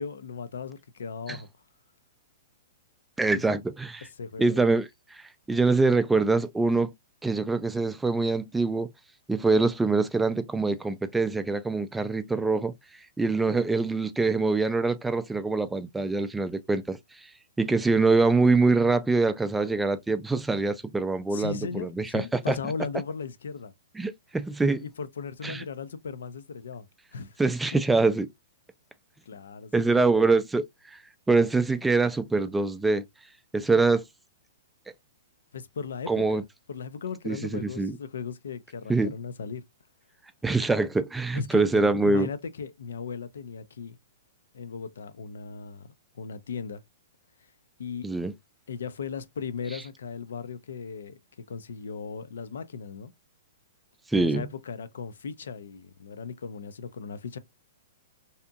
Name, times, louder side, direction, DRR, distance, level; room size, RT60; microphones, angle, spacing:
voice 1, 0.0-1.5 3.3-3.4 4.2-4.7 21.3-23.7 24.8-26.9 27.1-27.4 29.3-30.1 35.5-39.6 41.3-44.0 44.5-46.8 47.8-48.1 48.7-51.2 51.5-53.1 54.1-57.4, left 6 dB, 75° left, 0.4 m, -37 dB
voice 2, 3.2-4.1 4.4-6.9 7.2-8.9 9.3-12.7 13.2-17.0 17.6-22.6 24.0-24.8 25.4-25.6 27.4-28.3 29.7-31.0 31.3-33.0 33.5-34.0 36.1-36.4 37.3-38.0 38.9-39.1 40.4-42.3 48.0-48.3 54.1-54.5, right 3 dB, 10° right, 0.3 m, -24 dB
2.7 x 2.5 x 2.3 m
hypercardioid pair, 125°, 0 cm